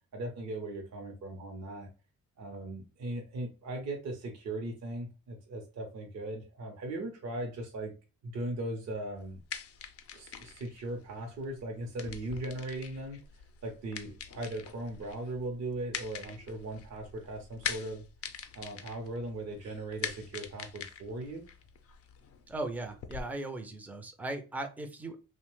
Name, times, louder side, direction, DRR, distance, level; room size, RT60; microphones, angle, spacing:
voice 1, 0.1-1.9 2.4-7.9 8.2-9.4 10.1-13.2 13.6-18.0 18.5-21.5, right 1 dB, 60° right, 1 dB, 0.7 m, -38 dB
sound 1, 9.2-23.2, left 7 dB, 50° left, 0.5 m, -44 dB
voice 2, 22.5-25.2, right 2 dB, 5° right, 6 dB, 0.5 m, -38 dB
2.8 x 2.1 x 3.0 m, 0.33 s
cardioid pair, 90°, 30 cm